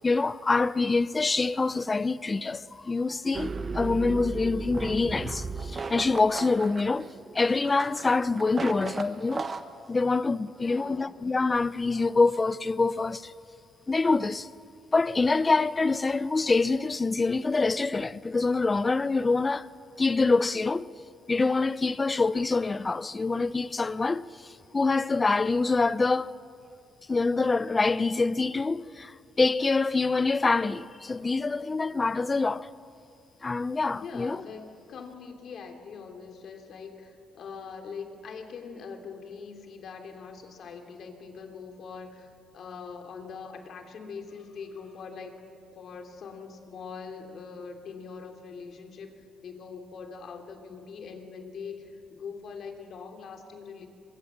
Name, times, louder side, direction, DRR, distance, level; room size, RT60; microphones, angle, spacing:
voice 1, 0.0-7.1 7.3-9.5 9.9-13.3 13.9-14.5 14.9-19.7 20.0-20.9 21.3-26.3 27.1-32.7 33.4-34.4, left 3 dB, 25° left, 0.7 m, -25 dB
sound 1, 3.3-9.6, right 4 dB, 40° right, 1.4 m, -35 dB
voice 2, 10.5-11.1 34.0-45.4 45.7-53.9, left 5 dB, 60° left, 3.1 m, -42 dB
24.0 x 22.5 x 7.4 m
cardioid pair, 90°, 0 cm